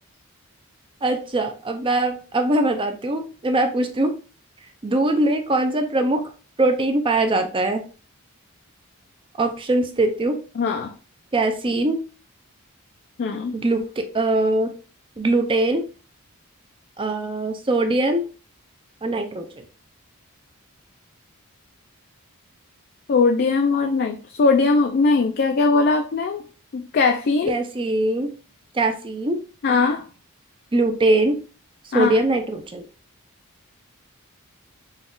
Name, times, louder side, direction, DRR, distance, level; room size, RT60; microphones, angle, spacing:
voice 1, 1.0-4.1 4.8-6.2 6.6-7.8 9.4-10.4 11.3-12.0 13.5-14.7 15.2-15.8 17.0-18.2 19.0-19.6 27.5-28.3 28.7-29.4 30.7-31.4 31.9-32.8, right 2 dB, 25° right, 6 dB, 0.5 m, -22 dB
voice 2, 10.6-10.9 13.2-13.6 23.1-26.4 26.7-27.6 29.6-30.0 31.9-32.2, left 4 dB, 45° left, 5 dB, 0.4 m, -20 dB
4.0 x 2.4 x 3.7 m, 0.36 s
head